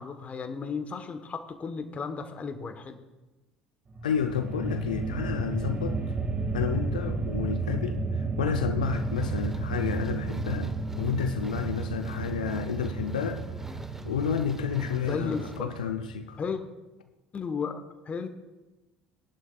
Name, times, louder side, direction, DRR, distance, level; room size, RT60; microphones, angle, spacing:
voice 1, 0.0-3.0 14.9-15.7 16.4-16.6 17.3-18.3, left 5 dB, 35° left, 1.2 m, -34 dB
sound 1, 3.9-16.2, right 3 dB, 30° right, 2.1 m, -32 dB
voice 2, 4.0-6.0 6.5-13.4 14.0-16.4, left 7 dB, 80° left, 0.6 m, -31 dB
sound 2, 8.8-15.6, right 1 dB, 10° right, 1.2 m, -47 dB
18.5 x 11.0 x 2.4 m
figure-of-eight pair, 60°, 4 cm